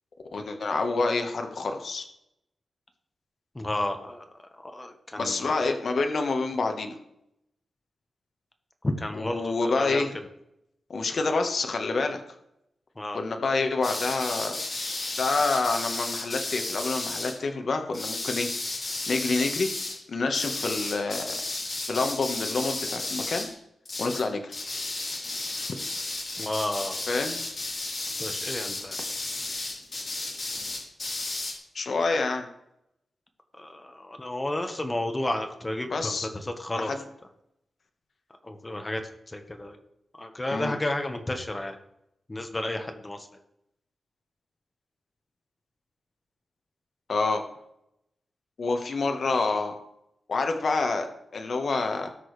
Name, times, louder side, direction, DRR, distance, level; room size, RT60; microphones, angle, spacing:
voice 1, 0.3-2.1 5.2-6.9 9.1-10.1 10.9-12.2 13.1-14.6 15.2-19.7 20.1-21.3 21.9-23.5 24.0-24.5 27.1-27.4 31.7-32.5 35.9-36.3 36.7-37.0 40.5-40.8 47.1-47.4 48.6-49.8 50.3-51.1 51.3-52.1, left 3 dB, 55° left, 5 dB, 1.3 m, -27 dB
voice 2, 3.5-4.2 4.6-5.4 8.8-10.1 13.0-13.2 26.4-27.0 28.2-29.0 33.5-36.9 38.4-39.0 39.3-39.8 40.2-41.8 42.3-43.3, left 1 dB, 20° left, 5 dB, 1.3 m, -32 dB
sound 1, 13.8-17.3 17.9-20.0 20.3-23.5 23.9-24.3 24.5-31.6, left 2 dB, 40° left, 3.8 m, -33 dB
18.0 x 6.3 x 3.3 m, 0.80 s
wide cardioid pair, 115°, 0 cm